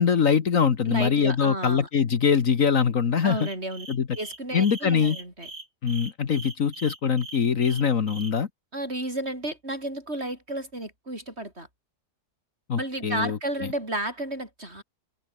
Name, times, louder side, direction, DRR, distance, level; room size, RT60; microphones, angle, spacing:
voice 1, 0.0-3.5 3.9-4.1 4.5-5.2 5.8-8.5 12.7-13.4, left 6 dB, 55° left, 1.7 m, -23 dB
voice 2, 0.9-1.9 3.2-3.9 4.1-5.5 8.7-11.7 12.7-14.8, right 1 dB, 40° right, 7.5 m, -32 dB
sound 1, 3.3-8.3, right 3 dB, 85° right, 5.8 m, -41 dB
omnidirectional pair, 1.7 m